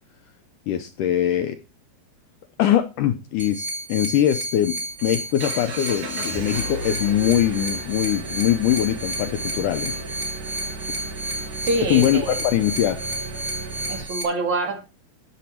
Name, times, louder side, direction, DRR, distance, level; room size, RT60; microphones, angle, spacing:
voice 1, 0.7-1.6 2.6-10.0 11.9-13.0, left 12 dB, 80° left, 8 dB, 1.9 m, -22 dB
sound 1, 3.4-14.2, right 1 dB, 25° right, 2.0 m, -31 dB
Engine, 4.5-14.0, right 3 dB, 80° right, 6.2 m, -35 dB
voice 2, 11.6-12.4 13.9-14.8, right 2 dB, 50° right, 3 dB, 3.4 m, -25 dB
13.5 x 7.1 x 4.5 m, 0.29 s
omnidirectional pair, 4.4 m